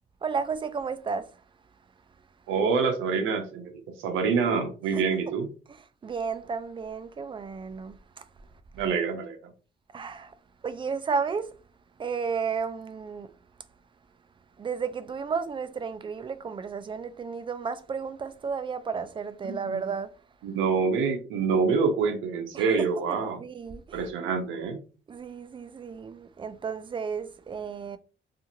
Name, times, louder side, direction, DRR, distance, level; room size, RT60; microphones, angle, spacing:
voice 1, 0.2-1.3 4.9-5.0 5.7-8.0 9.9-10.3 10.6-11.5 12.0-13.3 14.6-20.1 22.5-24.1 25.1-28.0, right 5 dB, 25° right, 0.3 m, -33 dB
voice 2, 2.5-3.7 4.0-5.5 8.8-9.4 19.4-19.8 20.4-23.4 23.9-24.8, right 5 dB, 90° right, 0.6 m, -26 dB
2.5 x 2.4 x 2.8 m
cardioid pair, 90°, 20 cm